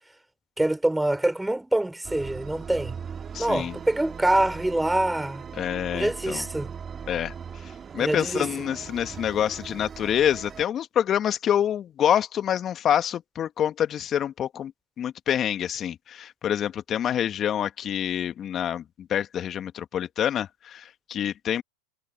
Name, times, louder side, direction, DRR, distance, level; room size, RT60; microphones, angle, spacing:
voice 1, 0.6-3.0 3.4-5.4 5.9-6.7 8.0-8.5, right 1 dB, 5° right, 4.6 m, -25 dB
sound 1, 2.0-10.6, right 7 dB, 25° right, 2.0 m, -39 dB
voice 2, 3.3-3.8 5.6-6.4 7.1-7.3 7.9-14.7 15.0-21.6, left 10 dB, 35° left, 2.2 m, -26 dB
hypercardioid pair, 90°, 0 cm